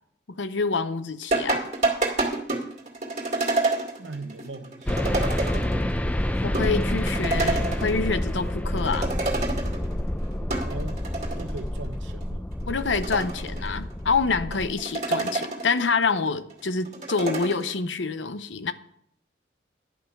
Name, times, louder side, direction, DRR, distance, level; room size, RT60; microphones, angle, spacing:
voice 1, 0.3-1.6 6.4-9.2 12.7-18.7, left 4 dB, 85° left, 0.7 m, -27 dB
sound 1, 1.3-5.9 6.2-6.3 6.5-8.3 8.6-9.9 10.3-11.6 12.1-12.2 12.7-13.9 14.5-15.9 16.3-17.7, right 2 dB, 40° right, 2.2 m, -28 dB
voice 2, 4.0-5.4 10.6-11.0 11.4-12.5, right 3 dB, 85° right, 0.9 m, -39 dB
sound 2, 4.9-14.7, left 1 dB, 10° left, 0.5 m, -28 dB
11.0 x 5.8 x 8.0 m
head